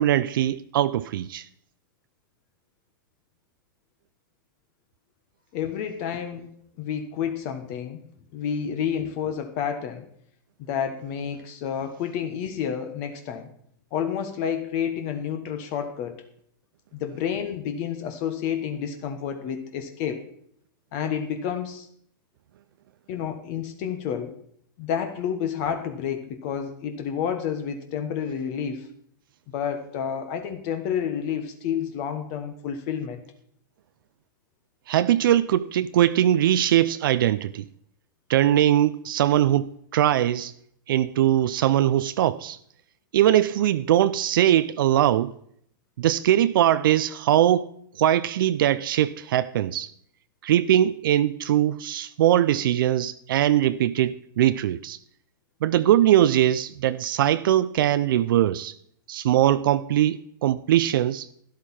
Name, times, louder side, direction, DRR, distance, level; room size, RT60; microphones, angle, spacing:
voice 1, 0.0-1.5 34.9-37.7 38.3-40.5 40.9-42.6 43.1-45.3 46.0-47.7 48.0-49.9 50.4-55.0 55.6-58.7 59.1-61.3, right 12 dB, 70° right, 0.5 m, -21 dB
voice 2, 5.5-8.0 8.3-10.1 10.7-13.5 13.9-16.2 16.9-20.3 20.9-21.9 23.1-24.4 24.8-28.9 29.5-33.2, left 8 dB, 50° left, 1.3 m, -30 dB
12.5 x 11.0 x 4.3 m
hypercardioid pair, 125°, 12 cm